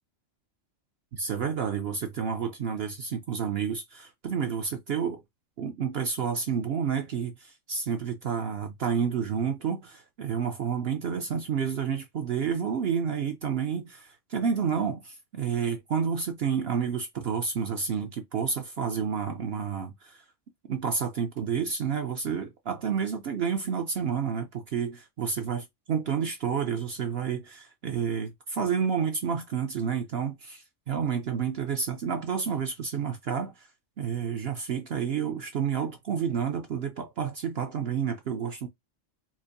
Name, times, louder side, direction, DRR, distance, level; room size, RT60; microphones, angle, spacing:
voice 1, 1.1-5.2 5.6-20.2 20.7-33.7 34.0-38.7, right 7 dB, 60° right, 0.7 m, -30 dB
4.5 x 2.4 x 2.6 m
omnidirectional pair, 1.3 m